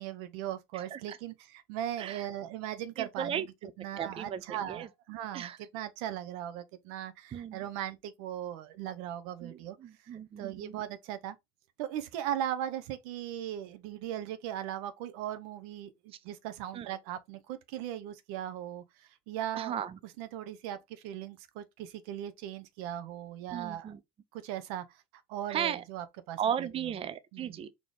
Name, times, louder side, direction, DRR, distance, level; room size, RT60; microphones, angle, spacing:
voice 1, 0.0-3.5 3.8-9.8 10.4-11.4 11.8-19.8 20.2-23.9 24.3-25.0 25.3-26.9 27.3-27.6, right 11 dB, 85° right, 0.7 m, -38 dB
voice 2, 0.7-1.2 2.0-2.3 3.0-3.7 4.0-4.9 5.3-5.6 7.3-7.6 9.4-10.8 16.7-16.9 19.6-20.0 23.5-24.0 25.5-25.8 26.4-27.7, right 9 dB, 30° right, 0.5 m, -36 dB
4.3 x 3.0 x 3.3 m
supercardioid pair, 100°, 18 cm